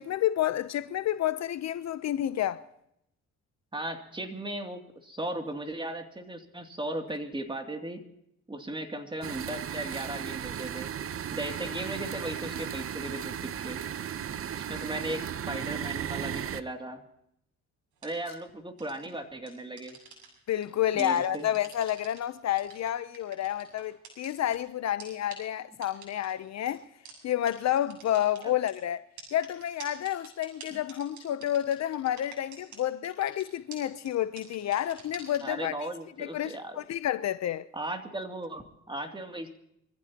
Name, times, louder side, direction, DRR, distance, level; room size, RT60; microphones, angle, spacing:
voice 1, 0.0-2.6 20.5-26.8 27.2-29.0 29.3-35.7 36.2-37.7, left 11 dB, 60° left, 0.7 m, -30 dB
voice 2, 3.7-8.0 8.5-10.9 11.3-13.8 14.5-17.0 18.0-20.0 20.9-21.5 28.4-28.5 30.7-30.8 35.4-36.8 37.7-39.5, right 1 dB, 15° right, 2.6 m, -37 dB
sound 1, 9.2-16.6, right 9 dB, 45° right, 0.8 m, -35 dB
sound 2, 18.0-18.3 18.8-19.1 19.5-20.6 21.0-22.2 22.6-24.6 25.0-25.1 25.3-25.4 25.8-26.3 26.7-26.8 27.1-27.2 27.5-27.6 27.8-28.7 29.2-32.8 33.0-33.4 33.7-33.8 34.1-34.2 34.4-35.4, right 7 dB, 75° right, 7.3 m, -46 dB
25.0 x 15.5 x 2.9 m
cardioid pair, 90°, 30 cm